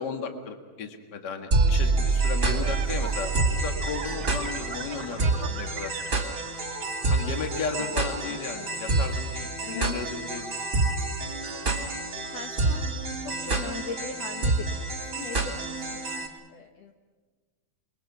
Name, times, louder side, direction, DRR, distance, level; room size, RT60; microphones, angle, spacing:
voice 1, 0.0-5.9 7.1-10.5, left 5 dB, 40° left, 5 dB, 1.9 m, -35 dB
sound 1, 1.5-16.3, right 3 dB, 25° right, 2.1 m, -27 dB
sound 2, 2.1-7.9, right 9 dB, 65° right, 2.2 m, -41 dB
voice 2, 7.8-8.4 9.6-9.9 12.3-16.9, left 5 dB, 60° left, 3 dB, 2.0 m, -41 dB
29.0 x 22.0 x 6.1 m, 1.4 s
omnidirectional pair, 3.9 m